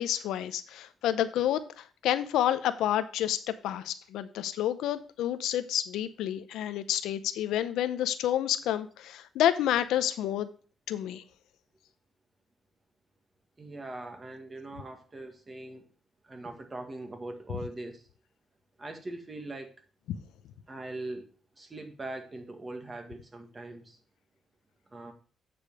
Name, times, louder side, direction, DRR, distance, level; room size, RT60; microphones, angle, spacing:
voice 1, 0.0-10.5 10.9-11.2 17.5-17.6, left 11 dB, 85° left, 12 dB, 0.6 m, -29 dB
voice 2, 13.6-15.8 16.2-18.0 18.8-19.7 20.7-21.3 21.6-24.0 24.9-25.1, right 2 dB, 25° right, 5 dB, 1.8 m, -41 dB
8.6 x 5.2 x 4.8 m, 0.39 s
cardioid pair, 90°, 0 cm